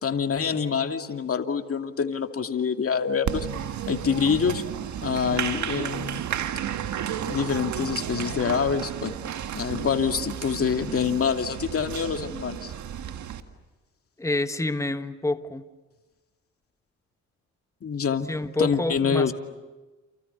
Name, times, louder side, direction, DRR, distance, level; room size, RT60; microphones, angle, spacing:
voice 1, 0.0-3.5 3.9-4.6 5.0-6.2 7.3-9.2 9.5-12.7 17.8-18.3 18.6-19.3, left 6 dB, 45° left, 6 dB, 2.4 m, -26 dB
Applause, 3.3-13.4, right 9 dB, 60° right, 1.8 m, -32 dB
voice 2, 14.2-15.6 18.3-19.3, left 2 dB, 10° left, 10 dB, 1.5 m, -27 dB
29.0 x 28.5 x 7.0 m, 1.2 s
hypercardioid pair, 50°, 33 cm